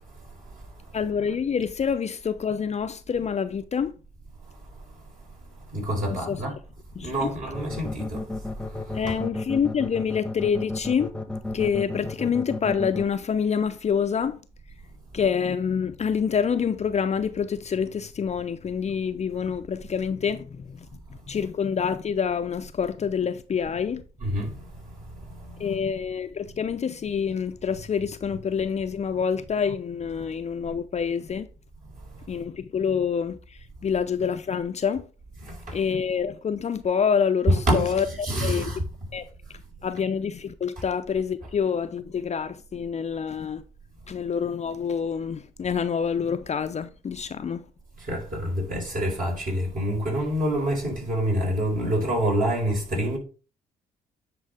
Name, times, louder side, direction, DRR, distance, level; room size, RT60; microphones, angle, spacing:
voice 1, 0.9-3.9 6.1-6.4 7.0-7.4 8.9-11.1 11.5-14.4 15.1-20.9 21.3-24.0 25.6-31.5 32.3-33.4 33.8-35.0 35.7-38.7 39.1-39.3 39.8-43.6 44.1-47.6, left 7 dB, 35° left, 0.6 m, -27 dB
voice 2, 5.7-6.5 7.0-8.2 24.2-24.5 25.5-25.8 35.7-35.8 37.5-37.9 38.2-38.8 48.1-53.2, equal, 45° right, 4.6 m, -26 dB
sound 1, 7.5-13.0, left 2 dB, 5° left, 1.2 m, -32 dB
9.7 x 4.9 x 3.5 m
hypercardioid pair, 45°, 19 cm